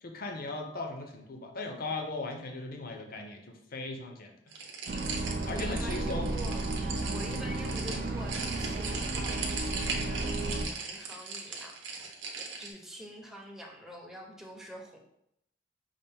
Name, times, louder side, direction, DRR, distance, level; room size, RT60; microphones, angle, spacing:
voice 1, 0.0-4.3 5.5-6.3, left 2 dB, 50° left, 4 dB, 0.6 m, -38 dB
sound 1, 4.5-12.7, right 4 dB, 80° right, 0.8 m, -38 dB
sound 2, 4.9-10.7, right 2 dB, 50° right, 0.4 m, -33 dB
voice 2, 5.5-15.0, equal, 5° right, -1 dB, 0.6 m, -46 dB
5.7 x 2.5 x 3.4 m, 0.78 s
head